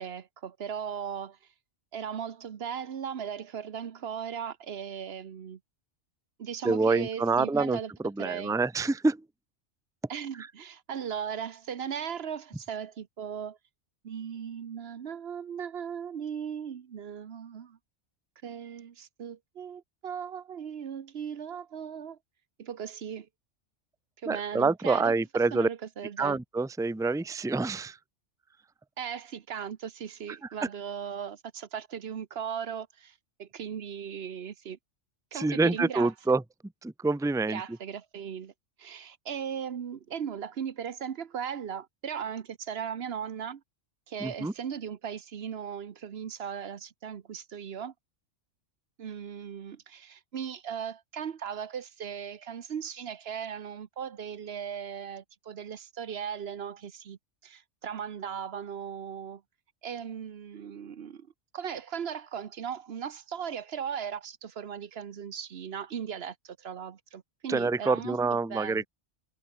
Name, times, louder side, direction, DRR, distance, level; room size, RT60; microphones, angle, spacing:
voice 1, 0.0-1.4 1.9-5.6 6.4-7.9 8.2-8.6 10.1-13.6 14.0-17.8 18.4-22.2 22.6-23.3 24.2-25.1 25.5-26.4 29.0-34.8 35.3-36.1 37.5-38.5 38.8-43.6 44.1-47.9 49.0-59.4 59.8-61.3 61.5-68.2 68.5-68.9, right 8 dB, 60° right, 1.2 m, -37 dB
voice 2, 6.6-9.2 10.4-10.5 24.3-25.7 26.2-28.0 35.3-36.4 36.8-37.6 44.2-44.5 67.5-68.9, right 3 dB, 5° right, 0.6 m, -27 dB
omnidirectional pair, 1.2 m